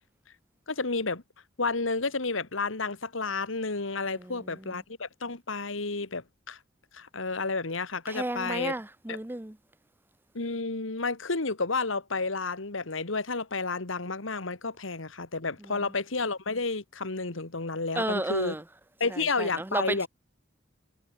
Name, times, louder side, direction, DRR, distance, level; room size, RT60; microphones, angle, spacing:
voice 1, 0.7-1.2 1.6-6.6 6.9-8.7 9.1-9.2 10.3-18.6 19.0-20.1, left 3 dB, 80° left, 2.0 m, -31 dB
voice 2, 4.2-4.7 8.1-9.6 15.8-15.9 18.0-18.6 19.1-20.1, right 1 dB, 10° right, 0.7 m, -33 dB
head